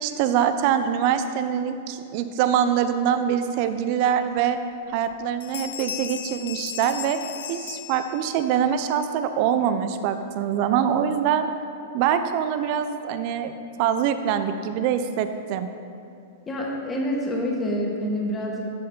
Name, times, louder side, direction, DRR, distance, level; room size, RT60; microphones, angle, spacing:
voice 1, 0.0-4.6 4.9-7.2 7.5-11.5 11.9-15.7, right 8 dB, 50° right, 10 dB, 0.5 m, -24 dB
sound 1, 4.4-4.5 4.9-5.1 5.4-8.6, left 9 dB, 70° left, 0.5 m, -36 dB
voice 2, 16.5-18.8, equal, 20° left, -2 dB, 1.7 m, -27 dB
13.0 x 5.4 x 3.8 m, 2.5 s
hypercardioid pair, 110°, 0 cm